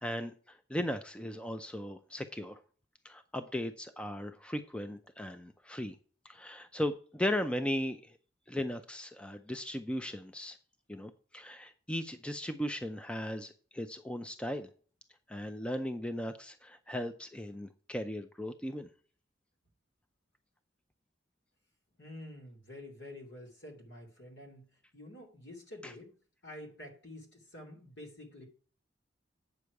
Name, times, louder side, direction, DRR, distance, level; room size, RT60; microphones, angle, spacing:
voice 1, 0.0-2.6 3.0-6.0 6.2-8.1 8.5-10.6 10.9-14.7 15.3-18.9 25.8-25.9, left 1 dB, 5° left, 8 dB, 0.5 m, -37 dB
voice 2, 22.0-24.7 24.9-26.1 26.4-28.5, left 1 dB, 70° left, 1 dB, 2.6 m, -48 dB
8.6 x 6.7 x 4.6 m, 0.41 s
head